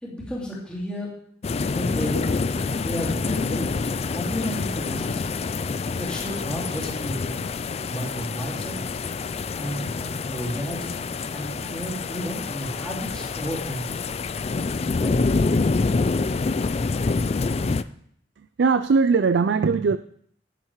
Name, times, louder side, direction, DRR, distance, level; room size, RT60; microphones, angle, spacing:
voice 1, 0.0-1.1 1.7-3.7 4.1-5.3 6.0-7.4 7.8-8.7 9.6-11.0 11.3-13.9 15.0-15.2, equal, 5° left, -5 dB, 2.9 m, -32 dB
sound 1, 1.4-17.8, left 4 dB, 35° left, 0.4 m, -27 dB
voice 2, 18.4-20.0, right 5 dB, 85° right, 13 dB, 0.4 m, -20 dB
10.5 x 9.7 x 4.7 m, 0.65 s
head